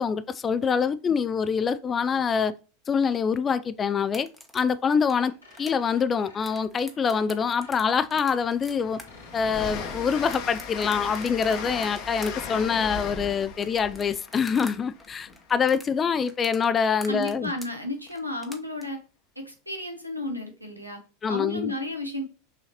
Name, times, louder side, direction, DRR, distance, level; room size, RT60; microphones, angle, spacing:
voice 1, 0.0-2.5 2.9-4.3 4.5-5.3 5.6-9.0 9.3-17.5 21.2-21.7, left 6 dB, 25° left, 0.4 m, -25 dB
sound 1, 4.0-14.7 15.0-18.8, equal, ahead, 1.0 m, -46 dB
sound 2, 5.2-12.4, left 1 dB, 85° left, 2.3 m, -53 dB
Train, 7.4-7.5 7.9-15.6, left 5 dB, 45° left, 0.9 m, -38 dB
voice 2, 17.1-19.0 19.4-21.0 21.3-22.2, left 1 dB, 90° right, 1.1 m, -33 dB
6.2 x 2.8 x 2.9 m
figure-of-eight pair, 85°, 0 cm